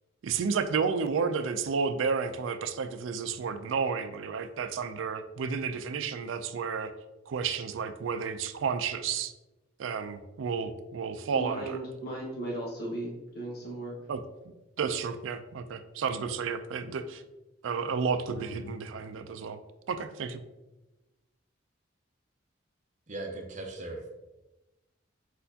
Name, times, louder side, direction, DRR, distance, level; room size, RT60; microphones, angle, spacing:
voice 1, 0.2-6.9 7.3-9.3 9.8-11.8 14.1-14.2 14.8-17.2 17.6-19.6 19.9-20.4, right 5 dB, 90° right, 10 dB, 0.4 m, -31 dB
voice 2, 11.3-14.0, right 1 dB, 55° left, -3 dB, 1.4 m, -36 dB
voice 3, 18.3-18.7 23.1-24.1, right 2 dB, 40° right, 3 dB, 0.7 m, -39 dB
4.4 x 4.3 x 2.7 m, 1.0 s
head